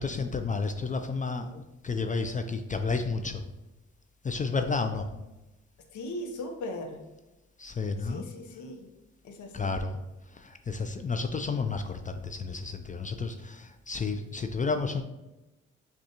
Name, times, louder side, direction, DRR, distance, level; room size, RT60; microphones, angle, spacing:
voice 1, 0.0-3.4 4.2-5.1 7.6-8.2 9.5-10.0 10.3-15.0, left 4 dB, 25° left, 7 dB, 0.4 m, -31 dB
voice 2, 5.9-7.0 8.0-8.9 9.2-9.8, left 1 dB, 70° left, 4 dB, 0.7 m, -38 dB
6.3 x 2.4 x 2.8 m, 1.0 s
supercardioid pair, 50°, 31 cm